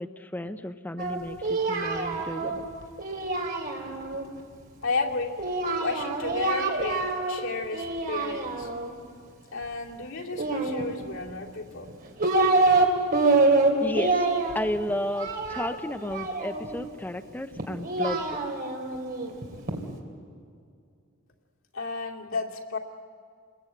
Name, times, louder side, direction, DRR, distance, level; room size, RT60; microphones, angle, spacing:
voice 1, 0.0-2.7 13.8-14.3 14.5-18.4, left 1 dB, 10° left, 8 dB, 0.6 m, -33 dB
Singing, 1.0-4.2 5.4-7.4 7.7-8.9 10.3-11.3 11.9-12.9 13.1-16.8 17.6-19.8, right 3 dB, 50° right, 2.9 m, -26 dB
voice 2, 4.8-5.3 5.8-8.7 9.5-11.9 21.7-22.8, left 3 dB, 85° left, -1 dB, 2.6 m, -32 dB
28.5 x 21.5 x 8.7 m, 2.3 s
head